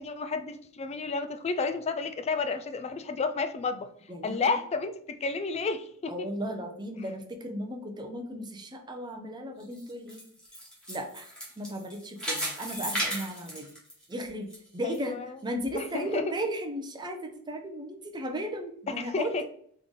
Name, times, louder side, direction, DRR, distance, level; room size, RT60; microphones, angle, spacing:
voice 1, 0.0-3.9 4.2-6.3 14.8-15.4 15.8-16.3 19.1-19.4, left 4 dB, 30° left, 9 dB, 0.3 m, -31 dB
voice 2, 4.1-4.5 6.1-10.2 10.9-13.7 14.1-19.4, equal, 20° right, 4 dB, 0.6 m, -36 dB
sound 1, 9.6-14.6 14.9-15.0 15.6-15.7, equal, 5° left, 1.5 m, -35 dB
3.8 x 3.2 x 3.6 m, 0.63 s
head